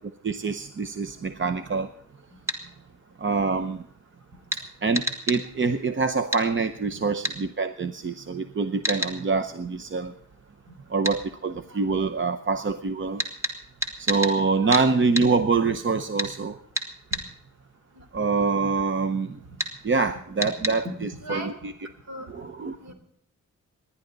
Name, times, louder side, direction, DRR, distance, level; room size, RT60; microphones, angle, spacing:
voice 1, 0.2-1.9 3.2-3.8 4.8-10.1 10.9-13.2 14.0-16.6 18.1-19.4 19.8-20.8 21.3-21.4 22.3-22.8, right 4 dB, 40° right, 9 dB, 0.7 m, -25 dB
sound 1, 2.5-2.6 4.5-4.6 4.9-5.4 6.3-6.5 7.2-7.4 8.8-9.2 11.0-11.2 13.2-14.4 14.7-14.9 15.1-15.3 16.2-16.3 16.7-17.3 19.6-19.7 20.4-20.8, equal, 10° right, 2.5 m, -28 dB
voice 2, 21.2-21.5 22.1-22.3 22.8-22.9, right 1 dB, 60° right, 6 dB, 4.0 m, -37 dB
27.0 x 11.5 x 4.0 m, 0.70 s
wide cardioid pair, 160°, 31 cm